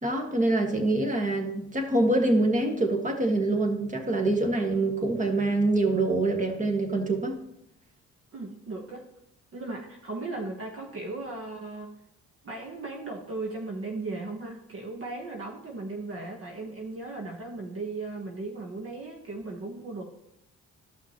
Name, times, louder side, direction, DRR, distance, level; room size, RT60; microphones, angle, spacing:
voice 1, 0.0-7.4, right 2 dB, 25° right, 3 dB, 1.6 m, -25 dB
voice 2, 8.3-9.0 9.5-11.9 12.4-20.1, right 3 dB, 45° right, 1 dB, 1.2 m, -37 dB
14.0 x 5.8 x 3.0 m, 0.81 s
cardioid pair, 90°, 30 cm